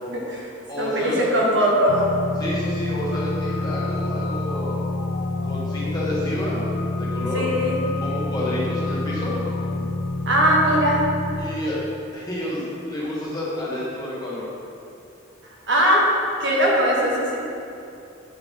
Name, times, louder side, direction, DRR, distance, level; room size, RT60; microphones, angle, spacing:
voice 1, 0.1-0.5 0.8-2.1 7.3-7.8 10.3-11.0 15.7-16.1 16.4-17.4, equal, 60° right, -4 dB, 1.3 m, -20 dB
voice 2, 0.7-1.2 2.4-4.9 5.4-6.6 7.0-7.5 8.0-9.4 11.4-11.8 12.1-14.5, left 1 dB, 20° left, -8 dB, 1.7 m, -29 dB
sound 1, 1.9-11.5, left 2 dB, 75° left, 0.5 m, -27 dB
9.1 x 4.7 x 3.9 m, 2.7 s
head